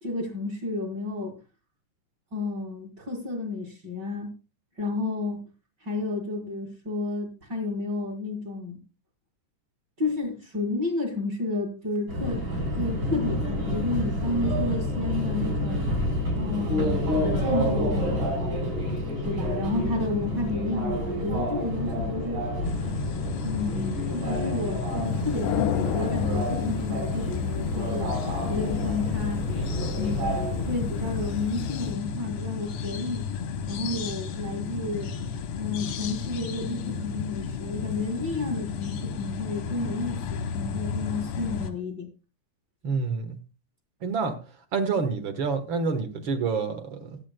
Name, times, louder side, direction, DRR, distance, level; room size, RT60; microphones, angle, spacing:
voice 1, 0.0-1.3 2.3-4.3 4.8-5.4 5.8-8.8 10.0-12.4 12.7-15.8 16.4-17.0 17.4-18.6 19.3-22.5 23.4-28.1 28.5-29.4 30.0-33.3 33.7-35.1 35.6-42.1, left 2 dB, 35° right, 2.4 m, -31 dB
Subway metro underground, 12.1-31.3, equal, 70° right, 6.7 m, -29 dB
sound 1, 22.6-41.7, left 6 dB, 65° left, 1.4 m, -33 dB
sound 2, 25.1-32.0, left 9 dB, 90° left, 2.3 m, -33 dB
voice 2, 42.8-43.4 44.0-44.4 44.7-47.2, right 4 dB, 55° right, 1.5 m, -28 dB
20.0 x 8.6 x 2.2 m
omnidirectional pair, 3.7 m